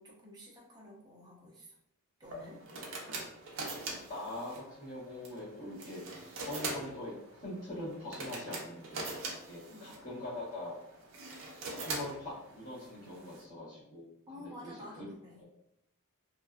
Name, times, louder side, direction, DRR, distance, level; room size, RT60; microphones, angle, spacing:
voice 1, 0.0-1.7 2.2-2.6 9.7-9.9 14.3-15.4, left 1 dB, 20° right, -5 dB, 0.6 m, -50 dB
sound 1, 2.2-13.4, right 2 dB, 55° right, 0.5 m, -43 dB
voice 2, 4.1-6.0 6.4-7.1 7.4-9.2 9.5-10.7 11.7-14.1 14.6-15.1, left 1 dB, 35° left, -12 dB, 1.3 m, -42 dB
2.6 x 2.2 x 2.3 m, 0.78 s
head